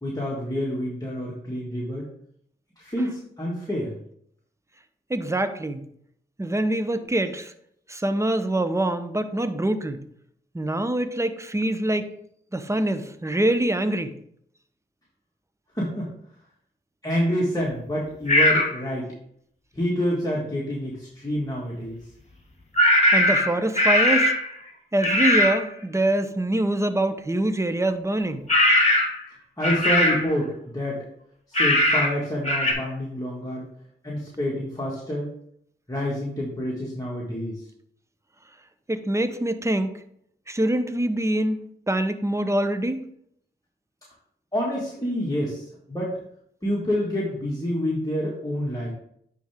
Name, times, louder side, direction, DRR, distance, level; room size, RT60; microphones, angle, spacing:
voice 1, 0.0-2.1 2.8-4.0 15.7-16.1 17.0-19.1 19.7-22.0 29.6-31.0 31.5-33.6 34.0-35.3 35.9-37.6 44.5-46.1 46.6-48.9, equal, 20° left, -5 dB, 1.9 m, -28 dB
voice 2, 5.1-5.9 6.4-7.5 7.9-10.0 10.5-12.1 12.5-14.1 23.1-24.3 24.9-28.5 38.9-39.9 40.5-41.6 41.9-43.0, right 1 dB, 15° right, 10 dB, 0.8 m, -24 dB
sound 1, 18.3-18.7 22.7-24.5 25.0-25.6 28.5-29.2 29.6-30.3 31.5-32.1 32.4-32.7, left 1 dB, 35° left, 2.0 m, -19 dB
9.6 x 3.5 x 3.5 m, 0.69 s
supercardioid pair, 40°, 20 cm